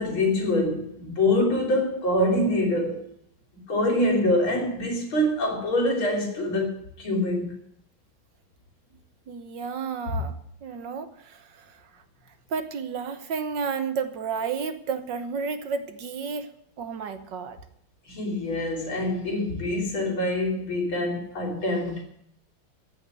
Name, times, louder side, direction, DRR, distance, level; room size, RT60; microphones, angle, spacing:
voice 1, 0.0-3.0 3.5-7.6 18.1-22.0, left 1 dB, 85° left, 4.2 m, -25 dB
voice 2, 9.3-10.4 10.6-12.0 12.5-16.5 16.8-17.6, right 5 dB, 65° right, 1.7 m, -32 dB
15.0 x 5.9 x 9.5 m
omnidirectional pair, 2.2 m